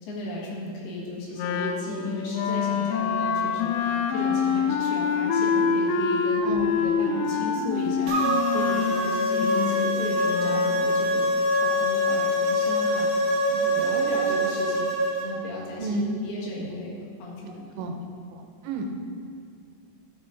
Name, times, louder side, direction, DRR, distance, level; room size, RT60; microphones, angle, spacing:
voice 1, 0.0-6.4 6.8-11.3 11.6-14.9 15.2-17.9, left 2 dB, 65° left, -4 dB, 3.4 m, -35 dB
Wind instrument woodwind instrument, 1.4-10.8, left 6 dB, 85° left, 2.8 m, -26 dB
sound 1, 8.1-15.3, equal, 65° right, 3.5 m, -24 dB
voice 2, 17.5-18.0 18.3-18.9, right 2 dB, 90° right, 3 dB, 3.2 m, -31 dB
11.5 x 8.3 x 3.8 m, 2.4 s
omnidirectional pair, 5.1 m